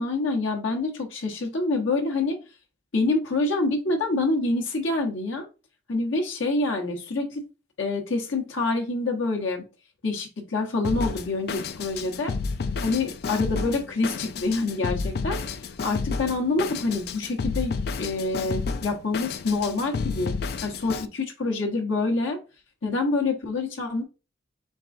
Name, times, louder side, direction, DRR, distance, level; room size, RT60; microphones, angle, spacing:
voice 1, 0.0-2.4 2.9-5.5 5.9-7.5 7.8-9.6 10.0-12.3 12.8-15.4 15.8-20.3 20.6-22.4 22.8-24.0, left 3 dB, 75° left, 2 dB, 1.1 m, -26 dB
Drum kit, 10.8-21.1, left 4 dB, 50° left, 0.3 m, -31 dB
4.6 x 3.6 x 2.5 m, 0.31 s
head